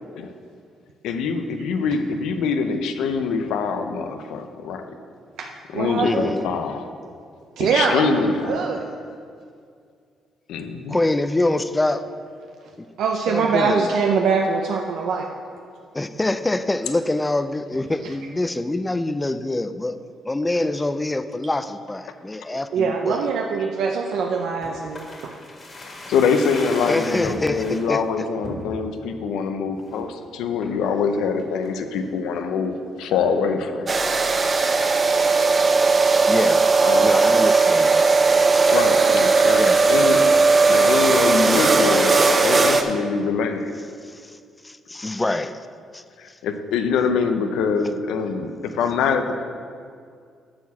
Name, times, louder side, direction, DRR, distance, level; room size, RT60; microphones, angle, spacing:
voice 1, 1.0-4.9 5.7-6.8 7.6-8.6 10.5-11.0 25.8-33.9 36.8-37.1 38.7-40.2 40.7-42.2 42.4-43.7 46.2-49.4, left 5 dB, 85° left, 7 dB, 0.6 m, -24 dB
voice 2, 5.4-6.3 7.6-8.8 13.0-15.3 22.5-25.3, right 5 dB, 80° right, 2 dB, 0.6 m, -23 dB
voice 3, 6.0-6.5 10.9-12.1 12.8-12.9 13.3-13.9 15.9-20.0 20.2-23.3 26.9-28.3 36.3-36.7 37.0-38.0 38.5-38.8 39.6-39.8 44.0-44.4 44.6-45.6 45.9-46.0, left 2 dB, 15° left, 11 dB, 0.4 m, -25 dB
sound 1, 24.6-27.9 28.4-29.1 29.5-29.6 29.8-30.1 30.6-30.9 31.4-32.1 32.4-32.5, left 1 dB, 30° left, 1.9 m, -37 dB
sound 2, 33.9-42.8, right 4 dB, 35° right, 0.7 m, -17 dB
8.7 x 4.7 x 7.0 m, 2.2 s
cardioid pair, 90°, 0 cm